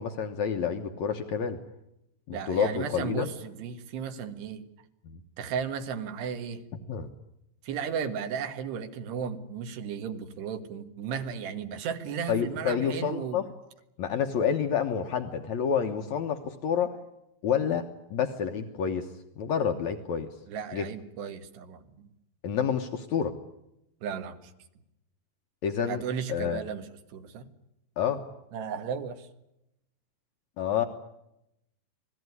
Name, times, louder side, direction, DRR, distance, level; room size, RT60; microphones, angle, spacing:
voice 1, 0.0-1.6 2.3-3.3 5.0-5.2 6.9-7.1 12.3-13.4 14.0-17.0 17.4-19.1 19.4-20.3 20.7-20.9 22.4-23.4 25.6-26.0 26.3-26.6 28.0-28.2 30.6-30.8, left 7 dB, 75° left, 5 dB, 1.6 m, -28 dB
voice 2, 2.3-4.7 5.4-6.6 7.6-13.4 20.5-22.1 24.0-24.5 25.9-27.5 28.5-29.3, right 7 dB, 70° right, 8 dB, 3.7 m, -35 dB
29.5 x 20.0 x 9.7 m, 0.87 s
omnidirectional pair, 5.0 m